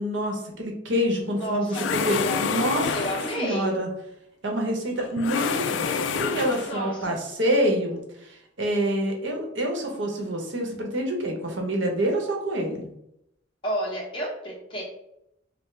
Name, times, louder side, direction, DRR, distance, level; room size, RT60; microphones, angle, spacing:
voice 1, 0.0-1.7 2.1-2.9 3.4-3.9 4.4-12.9, equal, 80° right, 2 dB, 0.9 m, -27 dB
voice 2, 1.3-2.5 2.9-3.8 6.6-7.2 13.6-14.8, right 1 dB, 30° left, -5 dB, 1.3 m, -31 dB
sound 1, 1.7-3.6 5.2-6.9, left 6 dB, 75° left, 0.3 m, -28 dB
5.2 x 2.1 x 3.3 m, 0.81 s
head